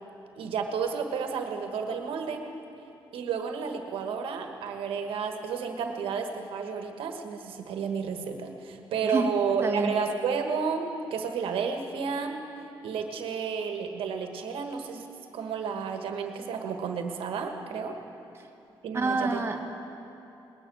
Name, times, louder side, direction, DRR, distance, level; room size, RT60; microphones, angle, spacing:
voice 1, 0.4-2.4 3.1-12.3 12.8-15.0 15.3-18.0 18.8-19.4, right 6 dB, 85° right, 5 dB, 1.3 m, -31 dB
voice 2, 9.6-9.9 18.9-19.7, right 3 dB, 30° right, 2 dB, 1.5 m, -27 dB
20.0 x 6.8 x 9.1 m, 2.8 s
cardioid pair, 85°, 9 cm